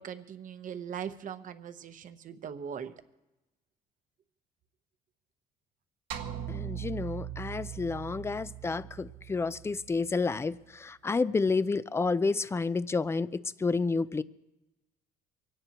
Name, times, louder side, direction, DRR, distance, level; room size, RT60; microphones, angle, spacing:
voice 1, 0.0-2.9, right 8 dB, 50° right, 1.0 m, -40 dB
sound 1, 6.1-10.5, right 10 dB, 85° right, 1.7 m, -40 dB
voice 2, 6.5-14.2, left 4 dB, 15° left, 0.5 m, -30 dB
24.0 x 17.5 x 3.0 m
cardioid pair, 110°, 17 cm